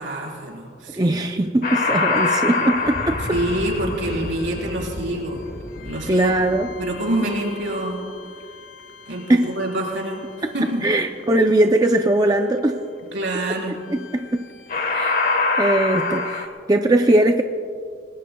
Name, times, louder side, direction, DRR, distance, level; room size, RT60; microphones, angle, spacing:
voice 1, 0.0-1.2 3.3-5.4 5.8-6.4 6.8-8.0 9.1-10.2 10.5-10.8 13.1-13.8, right 1 dB, 75° right, -1 dB, 4.2 m, -26 dB
voice 2, 1.0-3.2 6.1-6.7 9.3-9.5 10.8-12.8 13.9-14.5 14.9-15.2 15.6-17.4, right 1 dB, 20° right, 4 dB, 0.5 m, -20 dB
sound 1, 1.6-8.8 14.0-14.3 14.7-16.5, left 3 dB, 45° left, 1.3 m, -26 dB
29.0 x 19.5 x 2.3 m, 2.3 s
head